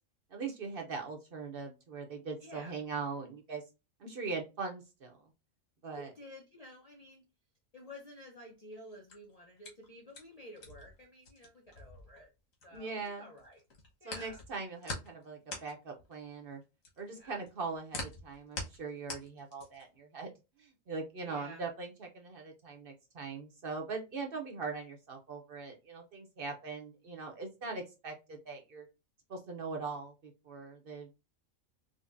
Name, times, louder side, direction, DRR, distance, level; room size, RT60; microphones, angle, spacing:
voice 1, 0.3-3.6 4.0-5.2 5.8-6.1 12.7-13.3 14.0-16.6 17.0-20.3 20.6-28.9 29.3-31.1, right 4 dB, 55° right, 0.8 m, -41 dB
voice 2, 2.4-2.8 5.9-7.2 7.7-12.3 12.6-13.6 14.0-14.4 17.1-17.4 21.2-21.6, equal, 45° left, 0.5 m, -51 dB
sound 1, 8.9-13.1 13.4-20.0, left 2 dB, 85° left, 1.5 m, -44 dB
5.1 x 2.1 x 2.5 m
omnidirectional pair, 1.4 m